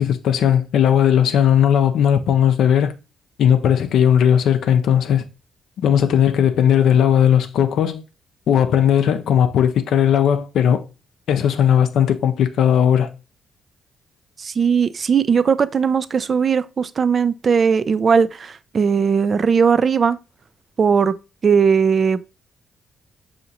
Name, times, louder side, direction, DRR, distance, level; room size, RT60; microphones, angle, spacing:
voice 1, 0.0-3.0 3.4-5.2 5.8-8.0 8.5-10.9 11.3-13.1, left 9 dB, 75° left, 0.4 m, -17 dB
voice 2, 14.4-20.2 20.8-21.1 21.4-22.2, right 6 dB, 50° right, 0.3 m, -18 dB
5.6 x 2.8 x 2.6 m
supercardioid pair, 65°, 0 cm